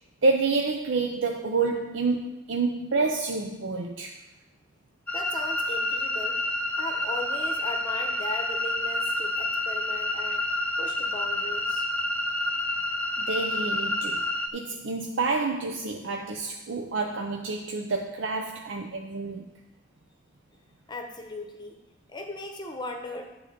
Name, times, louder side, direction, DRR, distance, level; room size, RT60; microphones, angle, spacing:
voice 1, 0.2-4.1 13.2-19.5, right 3 dB, 85° right, 2 dB, 0.6 m, -28 dB
voice 2, 5.1-6.4 6.8-11.9 20.9-21.8 22.1-23.3, left 2 dB, 25° left, 3 dB, 1.0 m, -38 dB
sound 1, 5.1-14.5, left 1 dB, 10° left, 0.6 m, -29 dB
10.0 x 3.9 x 6.8 m, 1.0 s
head